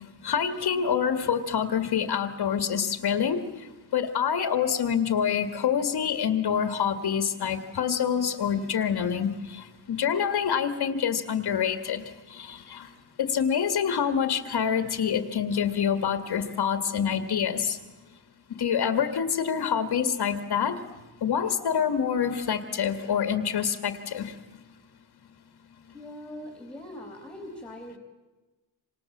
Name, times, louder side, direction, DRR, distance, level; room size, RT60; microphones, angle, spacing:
voice 1, 0.2-3.5 3.9-12.0 12.3-12.9 13.2-17.8 18.6-20.8 21.2-24.3, left 7 dB, 60° left, 9 dB, 1.9 m, -26 dB
voice 2, 25.9-28.0, left 1 dB, ahead, 3 dB, 3.3 m, -42 dB
28.0 x 27.0 x 7.4 m, 1.2 s
wide cardioid pair, 165°, 43 cm